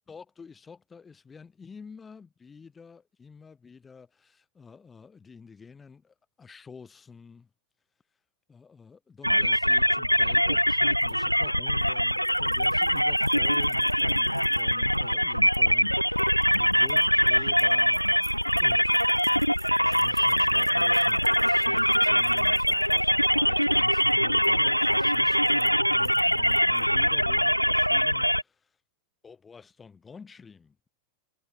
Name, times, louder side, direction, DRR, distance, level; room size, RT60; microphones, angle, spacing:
voice 1, 0.1-7.5 8.5-19.1 19.8-28.5 29.2-30.8, left 5 dB, 15° left, 4.5 m, -49 dB
sound 1, 9.2-28.4, equal, 90° left, 0.4 m, -23 dB
sound 2, 11.0-15.6 16.1-23.0 23.5-23.7 24.0-24.5 24.8-26.9, right 10 dB, 25° right, 7.7 m, -56 dB
figure-of-eight pair, 90°, 0 cm